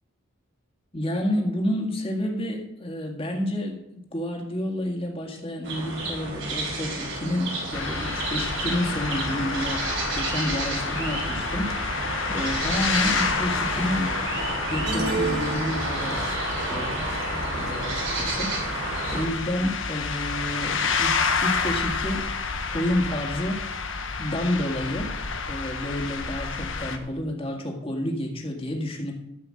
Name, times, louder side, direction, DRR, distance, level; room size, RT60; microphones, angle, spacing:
voice 1, 0.9-9.9 10.1-11.8 12.3-14.2 14.7-16.4 16.7-17.2 17.5-18.5 19.1-22.3 22.7-23.7 24.2-25.2 25.5-29.1, left 1 dB, 25° left, 1 dB, 2.0 m, -29 dB
sound 1, 5.6-19.3, right 2 dB, 65° right, 3.8 m, -31 dB
sound 2, 7.7-27.0, left 5 dB, 65° left, 1.2 m, -29 dB
sound 3, 14.9-16.4, right 3 dB, 50° right, 1.6 m, -30 dB
13.5 x 5.7 x 7.7 m, 0.86 s
head